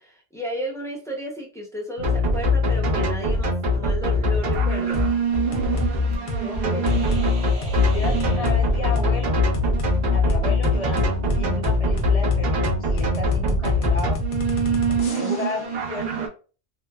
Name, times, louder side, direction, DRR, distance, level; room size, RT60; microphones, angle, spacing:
voice 1, 0.0-5.0, equal, 5° left, -2 dB, 0.4 m, -33 dB
sound 1, 2.0-16.3, left 1 dB, 70° right, 0.9 m, -22 dB
sound 2, 4.9-5.1 5.5-5.9 6.3-6.5 6.9-7.3 7.6-7.8 8.2-8.6 9.0-9.1 9.5-9.9 10.3-15.6, equal, 75° left, 0.9 m, -29 dB
voice 2, 5.9-7.3 7.9-9.4 10.1-14.2 14.5-16.1, left 3 dB, 40° left, 1 dB, 0.6 m, -34 dB
sound 3, 6.8-9.5, right 3 dB, 40° right, 0.8 m, -39 dB
3.0 x 2.0 x 2.2 m, 0.36 s
omnidirectional pair, 1.1 m